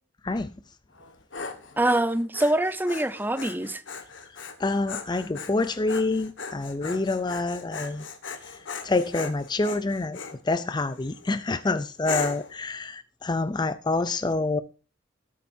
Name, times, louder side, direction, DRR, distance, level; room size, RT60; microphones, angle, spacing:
Dog, 0.9-10.4 10.9-11.3 12.0-12.6, left 5 dB, 85° left, 1.7 m, -38 dB
voice 1, 1.8-3.8, right 1 dB, 10° right, 0.8 m, -24 dB
voice 2, 4.6-8.1 8.4-10.2 10.4-14.6, left 3 dB, 25° left, 0.5 m, -27 dB
18.5 x 8.6 x 2.7 m
head